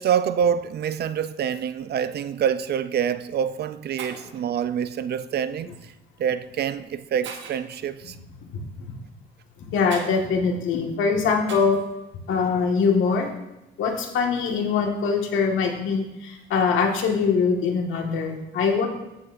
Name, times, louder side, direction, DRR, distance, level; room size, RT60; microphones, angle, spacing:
voice 1, 0.0-5.9 6.2-8.2, right 8 dB, 55° right, 0.5 m, -26 dB
Shatter, 4.0-4.4 5.7-5.9 6.5-6.6 7.2-7.7 9.9-10.2 11.5-11.9, right 6 dB, 75° right, 1.2 m, -39 dB
voice 2, 8.5-8.9 9.6-11.8 12.3-13.3 13.8-18.9, left 5 dB, 80° left, 1.8 m, -23 dB
14.0 x 8.2 x 2.6 m
cardioid pair, 90°, 20 cm